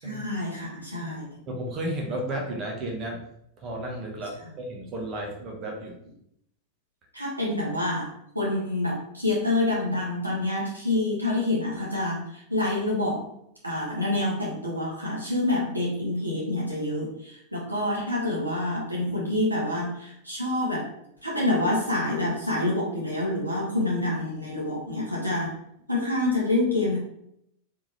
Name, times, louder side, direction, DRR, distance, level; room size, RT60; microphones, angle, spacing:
voice 1, 0.0-1.4 7.1-8.1 8.3-13.3 13.6-20.9 21.2-25.5 25.9-27.0, left 2 dB, 85° right, -4 dB, 1.5 m, -27 dB
voice 2, 1.5-3.2 3.6-6.0, right 1 dB, 30° right, 0 dB, 1.0 m, -33 dB
3.6 x 3.6 x 3.1 m, 0.74 s
figure-of-eight pair, 90°, 0 cm